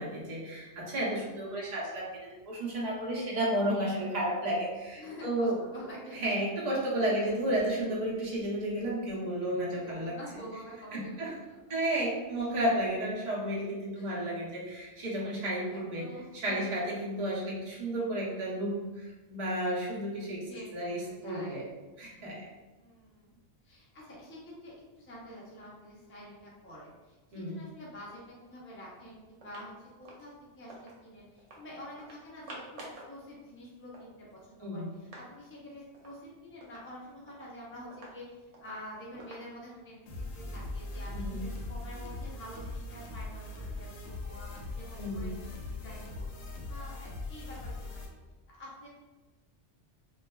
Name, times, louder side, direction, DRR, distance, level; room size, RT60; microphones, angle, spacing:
voice 1, 0.0-5.6 6.1-10.1 10.9-11.3 11.7-16.1 16.3-20.4 20.7-21.6 22.0-22.4 27.3-27.6 34.6-34.9 41.1-41.4 45.0-45.3, right 1 dB, 40° right, -5 dB, 0.8 m, -32 dB
voice 2, 5.0-6.2 7.1-7.3 7.9-8.1 9.7-11.8 13.9-14.4 15.0-16.6 20.5-20.9 21.2-21.6 22.8-23.3 23.6-45.3 45.7-48.0 48.5-48.9, equal, 15° left, -5 dB, 0.5 m, -48 dB
sound 1, 29.3-31.0 31.4-31.6 32.0-33.2 33.5-33.6 33.8-35.3 35.6-35.7 35.9-36.2 36.6-39.9, right 2 dB, 75° right, 1.0 m, -51 dB
sound 2, 40.1-48.1, left 2 dB, 70° left, 0.9 m, -40 dB
3.3 x 2.3 x 2.2 m, 1.2 s
omnidirectional pair, 1.2 m